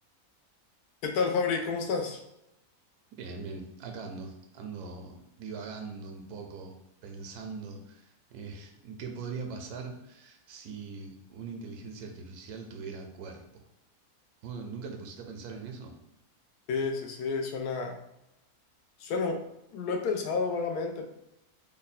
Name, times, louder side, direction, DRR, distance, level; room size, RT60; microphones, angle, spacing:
voice 1, 1.0-2.2 16.7-17.9 19.0-19.4 19.7-21.1, left 4 dB, 90° left, 4 dB, 1.1 m, -30 dB
voice 2, 3.1-6.8 7.0-13.6 14.4-15.9, right 4 dB, 90° right, 4 dB, 1.1 m, -41 dB
3.4 x 2.1 x 4.0 m, 0.88 s
omnidirectional pair, 1.6 m